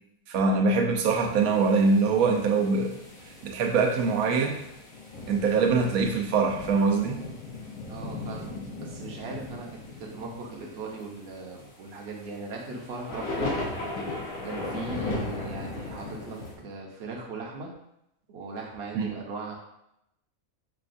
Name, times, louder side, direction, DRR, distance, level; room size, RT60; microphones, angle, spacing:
voice 1, 0.3-3.0 3.4-4.6 5.3-7.2 18.9-19.1, right 4 dB, 85° right, 2 dB, 1.1 m, -23 dB
sound 1, 1.2-16.5, left 2 dB, 80° left, 1.2 m, -37 dB
voice 2, 7.9-13.6 14.4-17.7 18.3-19.5, right 3 dB, 55° right, -1 dB, 0.9 m, -38 dB
5.7 x 2.3 x 2.5 m, 0.81 s
omnidirectional pair, 1.5 m